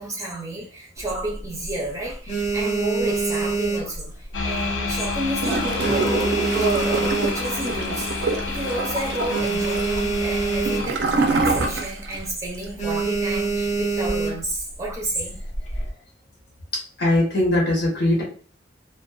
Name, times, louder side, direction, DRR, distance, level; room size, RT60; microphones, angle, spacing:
voice 1, 0.0-15.3, right 1 dB, 15° right, -3 dB, 0.6 m, -31 dB
sound 1, 1.0-1.7 2.1-4.6 4.9-5.2 5.5-7.8 8.2-8.3 8.5-8.6 9.0-11.2 11.5-11.7 12.1-12.3 12.8-14.6 15.3-15.9, right 4 dB, 40° left, 0.7 m, -25 dB
sound 2, 4.3-10.9, left 4 dB, 85° left, 0.5 m, -29 dB
Gurgling / Toilet flush, 5.4-12.2 12.5-12.6, right 3 dB, 60° right, 0.4 m, -26 dB
voice 2, 17.0-18.2, left 1 dB, 60° left, -3 dB, 1.0 m, -20 dB
2.5 x 2.2 x 2.2 m, 0.43 s
head